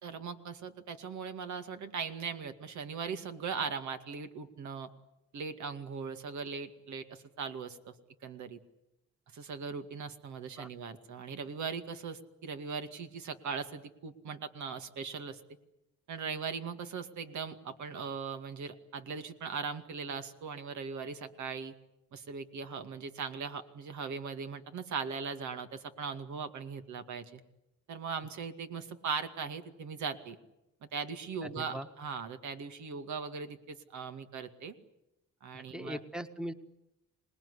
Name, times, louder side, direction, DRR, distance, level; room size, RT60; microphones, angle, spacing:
voice 1, 0.0-4.9 5.3-7.9 8.2-8.6 9.3-15.4 16.1-21.7 22.1-27.4 27.9-30.4 30.9-34.7 35.4-36.0, right 5 dB, 70° right, 8 dB, 2.3 m, -39 dB
voice 2, 31.4-31.9 35.5-36.5, equal, ahead, 9 dB, 1.6 m, -40 dB
26.5 x 19.5 x 9.9 m, 0.88 s
cardioid pair, 90°, 30 cm